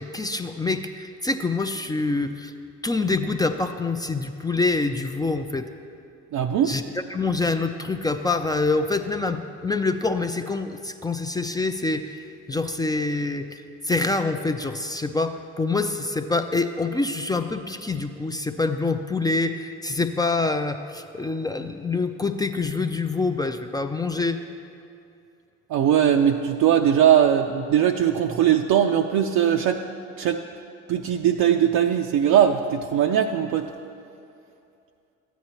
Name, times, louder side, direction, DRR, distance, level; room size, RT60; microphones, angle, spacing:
voice 1, 0.0-2.5 2.8-5.6 6.7-6.8 7.1-24.4, left 3 dB, 10° left, 7 dB, 0.4 m, -26 dB
voice 2, 6.3-6.7 25.7-29.8 30.2-30.4 30.9-33.7, right 9 dB, 55° right, 3 dB, 0.5 m, -20 dB
13.5 x 9.2 x 2.9 m, 2.6 s
hypercardioid pair, 65°, 35 cm